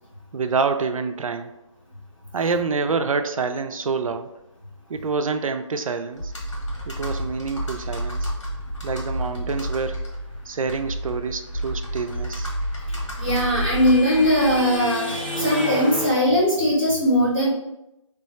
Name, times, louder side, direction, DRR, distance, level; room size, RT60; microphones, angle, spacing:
voice 1, 0.3-1.5 2.3-4.4 4.9-6.3 6.9-8.3 8.8-10.0 10.5-12.5, right 4 dB, 85° right, 8 dB, 0.4 m, -27 dB
Computer keyboard, 6.2-14.8, equal, 60° left, 1.2 m, -30 dB
sound 1, 12.2-16.1, right 1 dB, 15° left, 0.3 m, -31 dB
voice 2, 13.2-17.5, equal, 10° right, -11 dB, 1.4 m, -20 dB
3.1 x 2.3 x 4.2 m, 0.88 s
hypercardioid pair, 170°, 17 cm